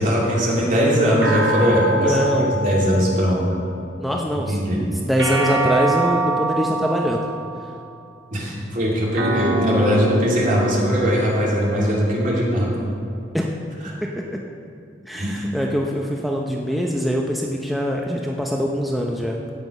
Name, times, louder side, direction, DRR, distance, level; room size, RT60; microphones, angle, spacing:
voice 1, 0.0-3.4 4.5-4.8 8.3-12.7 15.1-15.3, equal, 50° right, -4 dB, 2.6 m, -20 dB
sound 1, 1.2-3.8 5.2-7.7 9.1-11.8, right 2 dB, 85° right, 1.4 m, -25 dB
voice 2, 2.0-2.6 4.0-4.8 5.0-7.2 13.3-13.5 14.0-14.4 15.1-19.4, equal, ahead, -1 dB, 0.6 m, -23 dB
16.5 x 5.9 x 5.4 m, 2.4 s
head